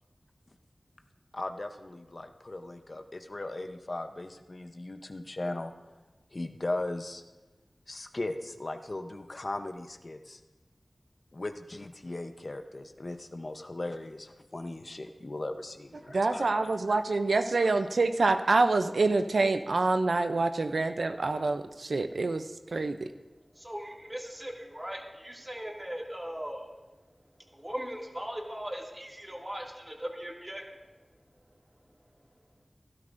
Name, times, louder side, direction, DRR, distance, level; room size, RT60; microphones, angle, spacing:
voice 1, 1.3-5.7 6.3-7.2 7.9-10.4 11.3-17.0, left 2 dB, 55° left, 6 dB, 0.7 m, -38 dB
voice 2, 16.1-22.4 22.7-23.0, right 3 dB, 90° right, 8 dB, 0.5 m, -26 dB
voice 3, 23.6-26.7 27.5-30.6, equal, 25° right, -1 dB, 2.2 m, -39 dB
16.5 x 12.5 x 2.6 m, 1.2 s
wide cardioid pair, 50°, 0 cm